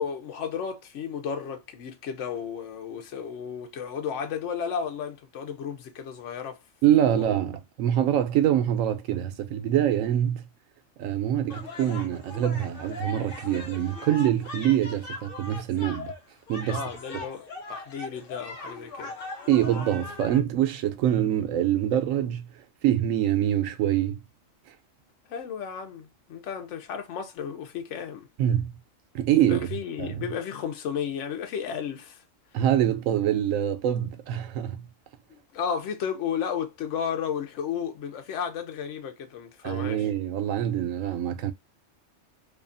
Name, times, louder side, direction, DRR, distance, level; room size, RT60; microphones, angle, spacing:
voice 1, 0.0-6.6 7.0-7.3 16.7-19.2 25.3-28.3 29.5-32.2 35.3-40.1, left 7 dB, 75° left, 1.0 m, -33 dB
voice 2, 6.8-10.4 11.0-16.1 16.5-16.9 19.5-22.5 22.8-24.2 28.4-28.7 29.1-29.7 30.0-30.3 32.5-34.9 39.6-41.5, right 11 dB, 90° right, 1.0 m, -25 dB
sound 1, 11.5-20.4, left 3 dB, 50° left, 0.9 m, -39 dB
2.7 x 2.3 x 2.5 m
omnidirectional pair, 1.3 m